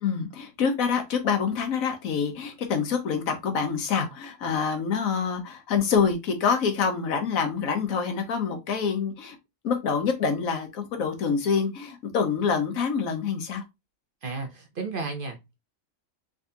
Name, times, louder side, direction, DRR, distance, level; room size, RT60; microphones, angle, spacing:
voice 1, 0.0-9.4 9.6-13.6, left 6 dB, 85° left, 1.4 m, -26 dB
voice 2, 14.2-15.6, right 4 dB, 50° right, 0.8 m, -33 dB
3.8 x 3.5 x 2.7 m
omnidirectional pair, 1.4 m